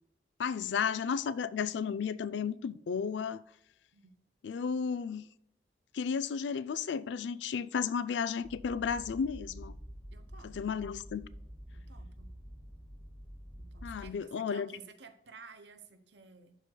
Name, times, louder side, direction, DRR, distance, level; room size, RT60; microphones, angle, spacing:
voice 1, 0.4-3.4 4.4-5.3 5.9-9.8 10.4-11.2 13.8-14.7, left 6 dB, 85° left, 0.4 m, -33 dB
sound 1, 8.4-14.1, equal, 5° left, 1.4 m, -48 dB
voice 2, 10.1-10.7 11.7-12.3 13.6-16.5, right 5 dB, 80° right, 0.9 m, -54 dB
12.0 x 4.8 x 2.2 m
head